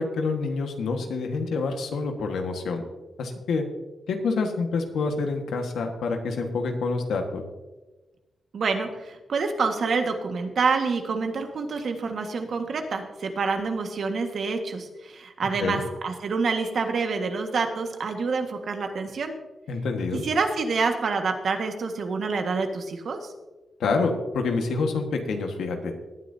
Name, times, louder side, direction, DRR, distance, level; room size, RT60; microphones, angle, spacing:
voice 1, 0.0-2.8 3.2-3.6 4.1-7.4 15.6-15.8 19.7-20.2 23.8-25.9, left 4 dB, 90° left, 4 dB, 1.5 m, -27 dB
voice 2, 8.5-19.3 20.2-23.3, right 4 dB, 65° right, 5 dB, 1.6 m, -27 dB
18.5 x 9.7 x 2.8 m, 1.2 s
cardioid pair, 85°, 0 cm